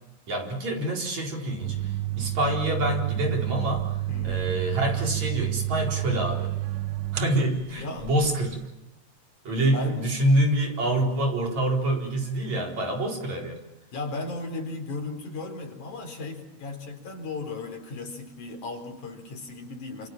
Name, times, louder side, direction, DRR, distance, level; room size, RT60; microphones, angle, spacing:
voice 1, 0.3-3.9 4.2-6.5 7.1-8.6 9.5-13.6, right 1 dB, 65° right, 1 dB, 5.7 m, -26 dB
sound 1, 1.6-8.7, right 16 dB, 50° right, 1.5 m, -30 dB
voice 2, 4.1-4.5 7.8-8.1 9.7-10.3 13.9-20.1, left 3 dB, 80° left, 5 dB, 5.8 m, -36 dB
29.0 x 26.5 x 7.4 m, 0.97 s
omnidirectional pair, 3.4 m